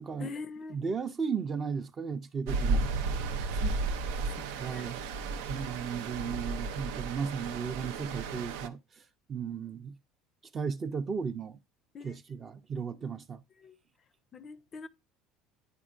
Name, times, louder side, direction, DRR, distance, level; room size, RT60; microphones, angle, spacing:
voice 1, 0.2-0.8 3.5-3.8 4.4-4.9 11.9-12.1 13.6-13.8 14.3-14.9, left 4 dB, 35° left, 0.5 m, -43 dB
voice 2, 0.7-2.9 4.6-5.0 5.5-8.8 9.3-9.9 10.5-11.6 12.0-13.4, right 6 dB, 30° right, 0.5 m, -35 dB
Stream, 2.5-8.7, right 3 dB, 90° right, 0.5 m, -33 dB
9.7 x 4.4 x 2.4 m
cardioid pair, 125°, 0 cm